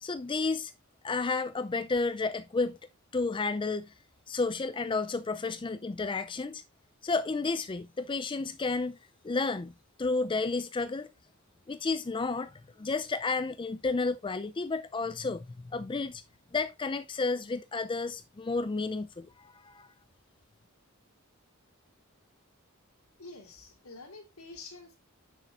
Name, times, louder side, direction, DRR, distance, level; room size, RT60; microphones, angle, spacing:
voice 1, 0.0-0.7 1.0-2.8 3.1-3.9 4.3-6.6 7.0-9.0 9.2-11.1 11.7-16.2 16.5-19.9, left 3 dB, 25° left, 0.4 m, -31 dB
voice 2, 23.2-25.0, left 3 dB, 75° left, 3.5 m, -47 dB
9.9 x 6.5 x 2.5 m
head